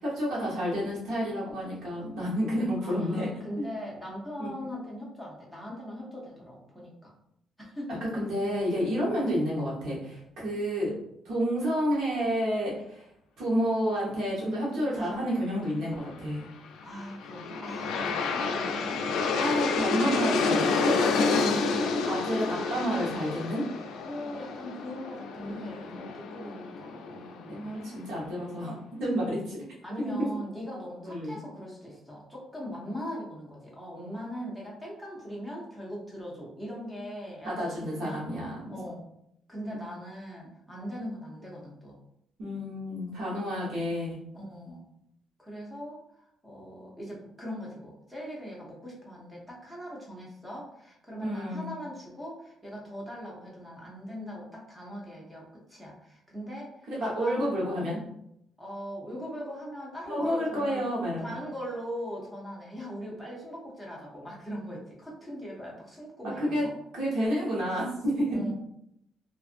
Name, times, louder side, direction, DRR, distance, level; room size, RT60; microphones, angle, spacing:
voice 1, 0.0-3.3 4.4-4.5 8.0-10.9 11.2-13.1 13.4-16.5 18.5-18.7 19.4-21.0 22.1-23.6 25.4-26.0 27.5-29.6 30.1-30.3 31.0-31.4 37.4-38.7 39.6-39.9 42.4-44.2 51.2-51.7 56.9-58.0 60.1-61.3 66.4-66.7 66.9-68.4, equal, 80° right, -5 dB, 1.0 m, -30 dB
voice 2, 2.8-7.1 7.6-8.0 16.8-19.2 21.3-22.1 24.0-27.8 29.8-38.2 38.7-39.1 39.5-42.0 44.3-44.9 45.4-46.0 46.4-56.7 57.0-57.6 58.6-60.8 61.2-66.7 68.3-68.5, equal, ahead, -4 dB, 0.7 m, -40 dB
Aircraft, 16.8-27.9, left 4 dB, 90° left, 0.3 m, -29 dB
2.5 x 2.5 x 2.5 m, 0.78 s
cardioid pair, 150°, 0 cm